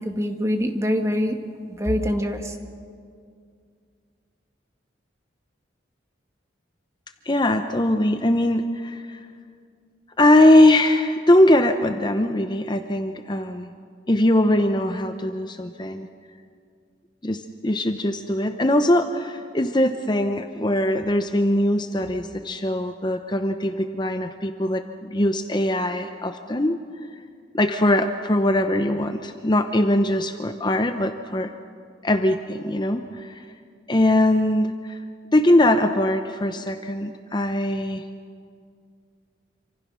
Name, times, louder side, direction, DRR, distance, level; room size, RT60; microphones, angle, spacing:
voice 1, 0.0-1.4 1.7-2.6, equal, 15° right, 5 dB, 1.7 m, -24 dB
voice 2, 7.3-9.2 10.2-13.7 14.1-16.1 17.2-26.8 27.5-31.5 32.0-33.4 33.9-35.0 35.3-38.1, left 1 dB, 25° left, 7 dB, 0.7 m, -21 dB
27.5 x 26.0 x 6.3 m, 2.2 s
head